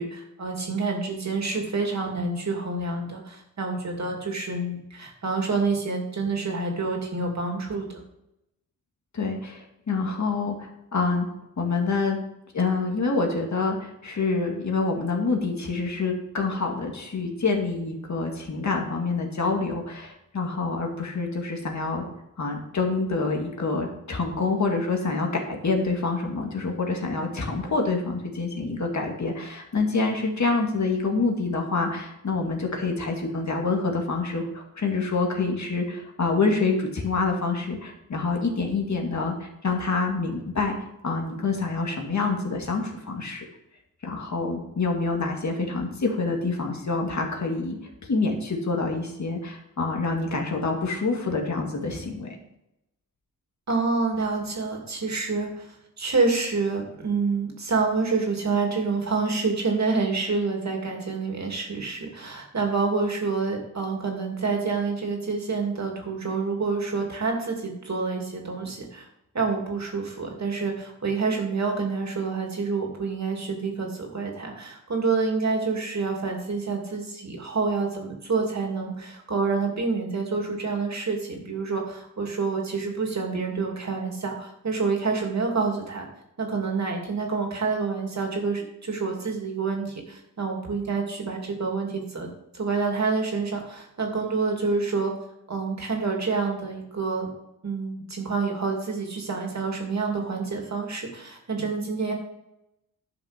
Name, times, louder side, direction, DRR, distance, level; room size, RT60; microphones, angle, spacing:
voice 1, 0.0-8.0 53.7-55.7 56.0-69.1 69.3-86.1 86.4-92.3 92.5-95.1 95.5-97.3 97.6-102.1, right 4 dB, 50° right, 1 dB, 2.5 m, -27 dB
voice 2, 9.1-11.3 11.6-12.2 12.5-22.1 22.4-40.7 41.0-43.4 44.0-47.8 48.1-52.4, left 3 dB, 50° left, 1 dB, 2.2 m, -27 dB
11.5 x 6.7 x 5.1 m, 0.85 s
wide cardioid pair, 120°, 35 cm